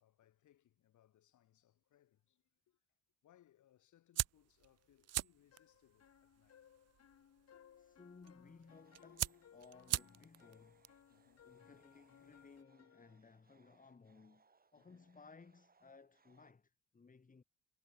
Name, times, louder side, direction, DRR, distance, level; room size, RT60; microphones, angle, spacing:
voice 1, 0.0-2.8 3.2-6.6 11.1-11.6 14.7-15.1, left 12 dB, 75° left, 6.4 m, -71 dB
sound 1, 4.1-12.6, right 13 dB, 55° right, 0.5 m, -45 dB
sound 2, 5.5-13.2, left 9 dB, 55° left, 2.3 m, -65 dB
voice 2, 7.5-14.4 14.7-17.4, left 4 dB, 25° left, 2.2 m, -61 dB
sound 3, 8.7-16.5, right 4 dB, 30° right, 6.0 m, -75 dB
cardioid pair, 90°, 30 cm